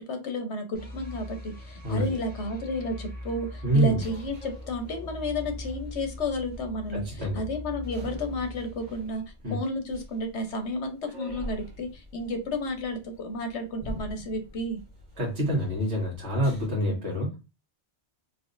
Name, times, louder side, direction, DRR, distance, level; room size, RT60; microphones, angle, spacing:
voice 1, 0.1-9.2 9.5-14.8 16.9-17.1, left 1 dB, 75° left, 5 dB, 1.2 m, -32 dB
sound 1, 0.7-9.8, equal, 10° left, 1.0 m, -41 dB
sound 2, 2.5-16.7, equal, 45° right, 1.2 m, -46 dB
voice 2, 3.6-4.0 6.9-7.4 9.4-9.6 15.2-17.4, right 1 dB, 70° right, -3 dB, 1.6 m, -26 dB
4.0 x 2.9 x 2.6 m, 0.28 s
omnidirectional pair, 1.2 m